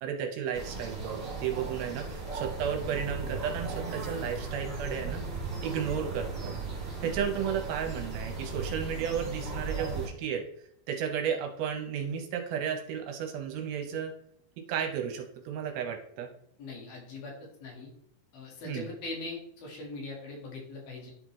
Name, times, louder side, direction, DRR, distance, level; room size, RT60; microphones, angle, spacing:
voice 1, 0.0-5.2 5.6-6.5 7.0-10.4 10.9-14.1 14.6-16.3 18.7-18.9, right 8 dB, 75° right, 4 dB, 2.5 m, -33 dB
sound 1, 0.5-10.1, right 3 dB, 20° right, 2.1 m, -37 dB
voice 2, 16.6-17.3 17.6-17.9 18.3-21.1, left 3 dB, 70° left, -2 dB, 3.4 m, -41 dB
11.0 x 3.9 x 3.0 m, 0.68 s
omnidirectional pair, 4.5 m